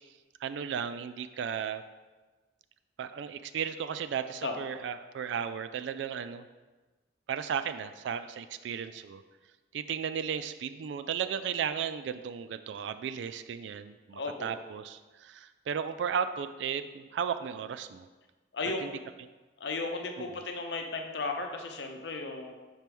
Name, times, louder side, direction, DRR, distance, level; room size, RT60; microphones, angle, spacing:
voice 1, 0.4-1.8 3.0-6.4 7.3-9.2 9.7-18.1 18.8-19.0 20.2-20.4, right 7 dB, 75° right, 11 dB, 0.3 m, -35 dB
voice 2, 14.1-14.5 18.5-18.8 19.6-22.5, left 3 dB, 70° left, 4 dB, 0.7 m, -35 dB
4.5 x 4.4 x 5.2 m, 1.3 s
head